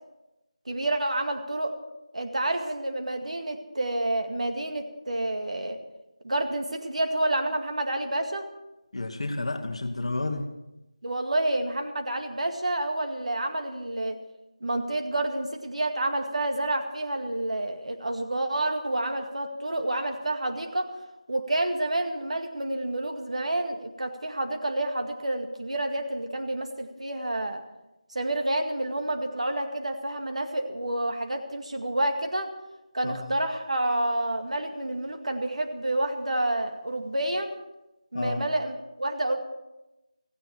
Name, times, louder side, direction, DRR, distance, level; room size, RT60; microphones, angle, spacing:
voice 1, 0.7-1.7 2.1-5.8 6.2-8.5 11.0-14.2 14.6-20.9 21.3-27.6 28.1-32.5 32.9-37.5 38.1-39.4, right 1 dB, 75° right, 5 dB, 2.1 m, -29 dB
voice 2, 8.9-10.5 33.0-33.2 38.1-38.4, left 2 dB, 55° left, 5 dB, 1.5 m, -30 dB
17.0 x 16.0 x 4.6 m, 0.96 s
figure-of-eight pair, 170°, 4 cm